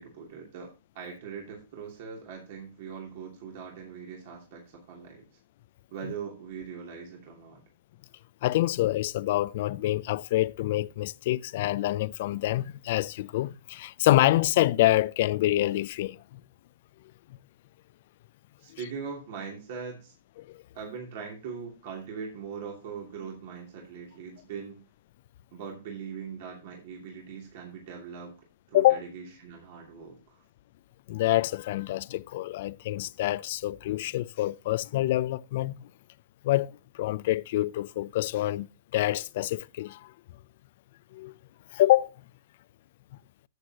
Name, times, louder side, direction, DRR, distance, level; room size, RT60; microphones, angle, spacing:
voice 1, 0.0-5.2 5.9-7.6 18.6-20.1 20.7-24.8 25.5-28.3 28.7-30.4, right 6 dB, 55° right, 2.9 m, -41 dB
voice 2, 8.4-16.4 20.5-20.6 28.7-29.0 31.1-35.8 36.4-38.7 38.9-40.0 41.1-41.3 41.7-42.1, left 15 dB, 55° left, 0.4 m, -26 dB
13.5 x 8.0 x 2.9 m
hypercardioid pair, 120°, 0 cm